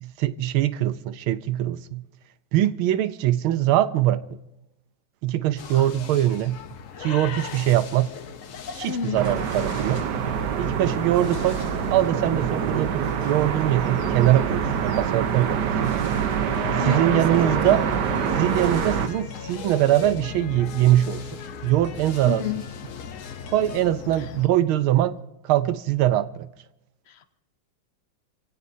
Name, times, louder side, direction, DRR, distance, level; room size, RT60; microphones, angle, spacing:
voice 1, 0.0-2.0 2.5-4.2 5.2-6.6 7.0-8.1 8.7-10.0 10.6-11.6 11.9-16.1 16.7-17.8 18.4-21.2 21.6-22.5 23.5-25.2 25.4-26.5, right 13 dB, 85° right, 1.6 m, -22 dB
sound 1, 5.6-24.5, left 7 dB, 50° left, 1.0 m, -39 dB
voice 2, 8.9-9.7 16.8-17.8 22.2-22.6 24.2-24.3 27.1-27.4, left 7 dB, 70° left, 0.6 m, -31 dB
sound 2, 9.2-19.1, right 7 dB, 60° right, 1.4 m, -25 dB
sound 3, 16.5-23.9, left 8 dB, 90° left, 1.9 m, -41 dB
28.0 x 16.5 x 2.7 m
omnidirectional pair, 2.2 m